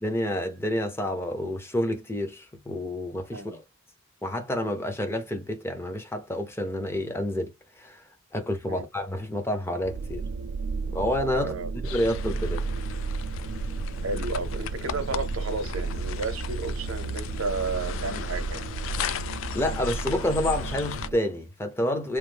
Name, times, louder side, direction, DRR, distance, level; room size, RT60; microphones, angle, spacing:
voice 1, 0.0-3.6 4.2-7.5 7.8-8.0 8.3-10.3 10.9-11.5 11.9-12.6 19.5-22.2, left 1 dB, 10° left, 0.6 m, -29 dB
sound 1, 9.8-21.2, right 4 dB, 60° right, 0.3 m, -33 dB
voice 2, 11.3-11.7 14.0-18.7, right 3 dB, 85° right, 0.7 m, -32 dB
sound 2, 11.8-21.1, left 8 dB, 65° left, 0.3 m, -37 dB
3.1 x 2.1 x 3.3 m
head